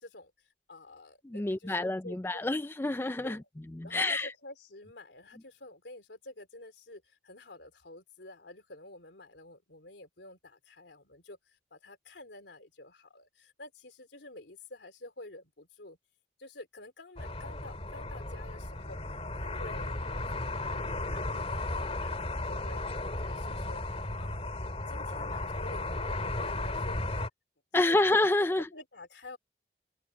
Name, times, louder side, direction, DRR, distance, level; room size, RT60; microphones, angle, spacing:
voice 1, 0.7-2.4 3.2-3.5 3.8-11.4 11.7-16.0 16.4-22.8 23.2-23.8 24.2-24.6 24.9-27.0 27.7-28.0 28.3-28.4 28.7-29.4, left 2 dB, 80° left, 3.2 m, -49 dB
voice 2, 1.2-3.4 3.7-4.3 27.7-28.7, left 2 dB, 15° left, 0.4 m, -28 dB
sound 1, 17.2-27.3, left 2 dB, 35° left, 2.5 m, -35 dB
head